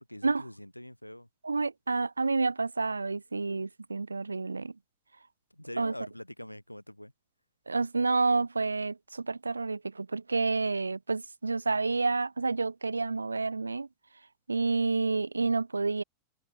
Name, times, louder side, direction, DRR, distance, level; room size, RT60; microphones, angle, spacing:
voice 1, 0.0-1.3 5.5-7.1, left 1 dB, 90° left, 1.8 m, -44 dB
voice 2, 1.4-4.7 5.8-5.9 7.7-13.9 14.5-16.0, right 3 dB, 80° right, 0.4 m, -29 dB
figure-of-eight pair, 90°, 0 cm